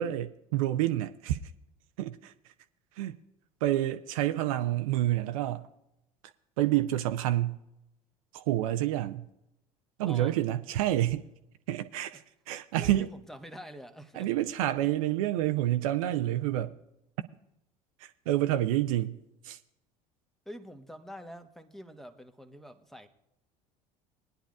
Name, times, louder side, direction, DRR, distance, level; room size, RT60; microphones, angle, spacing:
voice 1, 0.0-1.4 2.0-2.5 3.0-3.2 3.6-5.7 6.6-7.6 8.3-9.3 10.0-11.3 11.7-13.1 14.2-16.8 18.0-19.2 19.4-19.6, right 14 dB, 65° right, 0.6 m, -28 dB
voice 2, 10.0-10.4 12.1-12.2 12.8-14.3 20.4-23.1, equal, ahead, 1.0 m, -46 dB
20.5 x 10.0 x 2.4 m
figure-of-eight pair, 65°, 19 cm